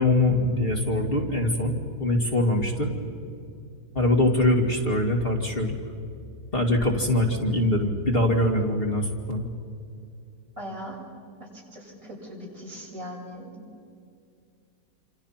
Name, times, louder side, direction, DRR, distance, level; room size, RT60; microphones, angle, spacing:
voice 1, 0.0-2.9 3.9-5.7 6.5-9.5, left 1 dB, 35° left, 2 dB, 2.6 m, -23 dB
voice 2, 10.6-11.0 11.4-13.6, equal, 55° right, -3 dB, 7.5 m, -39 dB
28.0 x 26.5 x 5.9 m, 2.4 s
omnidirectional pair, 1.6 m